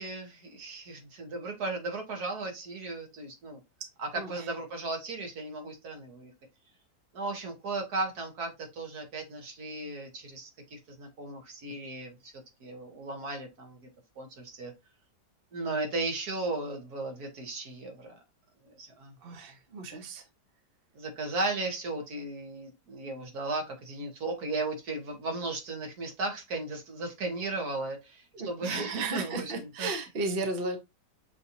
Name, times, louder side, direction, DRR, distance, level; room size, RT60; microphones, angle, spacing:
voice 1, 0.0-3.6 4.0-6.3 7.1-12.3 12.6-13.8 14.2-14.7 15.5-18.2 18.6-19.3 21.0-29.9, right 2 dB, 65° right, 3 dB, 1.7 m, -36 dB
voice 2, 4.2-4.5 19.2-20.2 28.3-30.8, right 3 dB, 45° right, 5 dB, 0.9 m, -34 dB
6.3 x 2.8 x 2.7 m, 0.23 s
omnidirectional pair, 1.8 m